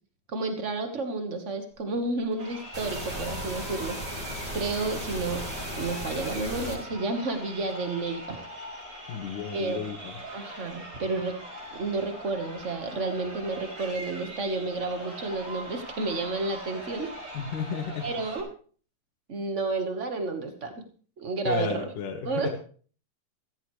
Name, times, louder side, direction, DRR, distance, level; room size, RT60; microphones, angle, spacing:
voice 1, 0.3-4.2 4.5-5.4 5.8-8.4 9.5-9.8 10.3-11.3 11.7-17.4 18.0-18.5 19.3-20.7 21.2-21.9 22.2-22.5, right 3 dB, 80° right, 6 dB, 0.6 m, -31 dB
Crowd, 2.3-18.4, equal, 40° right, 5.8 m, -42 dB
sound 1, 2.7-6.7, equal, 10° right, 5.0 m, -36 dB
voice 2, 9.1-10.1 17.3-18.1 21.4-22.5, left 5 dB, 75° left, 1 dB, 3.1 m, -32 dB
15.0 x 15.0 x 3.2 m, 0.43 s
omnidirectional pair, 3.7 m